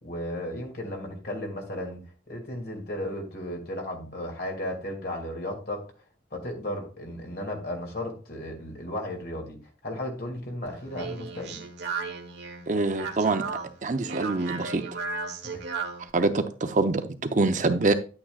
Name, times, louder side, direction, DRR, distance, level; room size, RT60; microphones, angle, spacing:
voice 1, 0.0-2.0 2.3-5.9 6.3-11.6 15.4-15.6, left 1 dB, 55° left, 2.5 m, -35 dB
Speech, 10.7-16.1, right 4 dB, 70° right, 1.4 m, -35 dB
voice 2, 12.7-13.4 13.8-14.8 16.1-17.9, right 3 dB, 40° right, 0.6 m, -25 dB
9.9 x 8.8 x 2.4 m
head